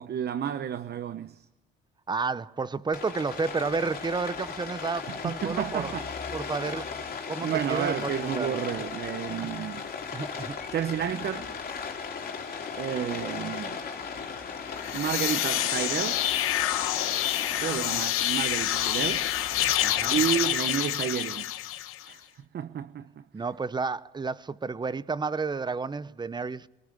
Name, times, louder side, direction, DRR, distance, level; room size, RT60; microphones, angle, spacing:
voice 1, 0.0-1.5 5.2-6.1 7.4-9.8 10.7-11.5 12.8-13.8 14.9-16.2 17.6-19.3 20.1-21.5 22.1-22.2 22.5-23.2, right 9 dB, 50° right, 0.9 m, -31 dB
voice 2, 2.1-5.9 6.3-8.7 10.1-10.6 19.8-20.2 23.3-26.7, right 4 dB, 20° right, 0.9 m, -31 dB
Rain, 2.9-20.5, left 5 dB, 45° left, 3.6 m, -37 dB
sound 1, 14.7-22.1, left 13 dB, 80° left, 1.3 m, -27 dB
23.5 x 18.5 x 9.9 m
cardioid pair, 90°, 21 cm